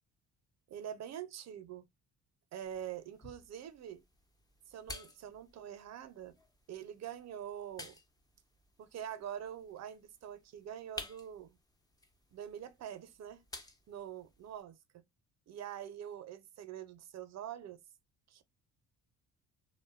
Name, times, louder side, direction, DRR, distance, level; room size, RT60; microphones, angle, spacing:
voice 1, 0.7-1.9 2.5-4.0 4.7-6.4 6.7-8.0 8.8-11.6 12.3-13.4 13.9-14.8 15.5-17.8 18.3-18.4, right 10 dB, 50° right, 0.5 m, -45 dB
sound 1, 2.6-14.6, left 2 dB, 10° left, 0.4 m, -53 dB
2.5 x 2.1 x 2.4 m
cardioid pair, 90°, 35 cm